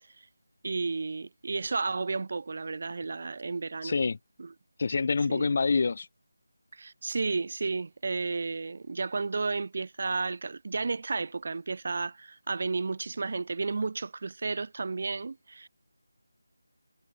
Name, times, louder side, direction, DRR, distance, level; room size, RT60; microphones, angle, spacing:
voice 1, 0.6-4.0 4.4-4.5 5.3-5.5 6.7-15.7, right 4 dB, 40° right, 6.7 m, -32 dB
voice 2, 3.8-4.2 4.8-6.1, left 4 dB, 35° left, 1.8 m, -26 dB
figure-of-eight pair, 175°, 0 cm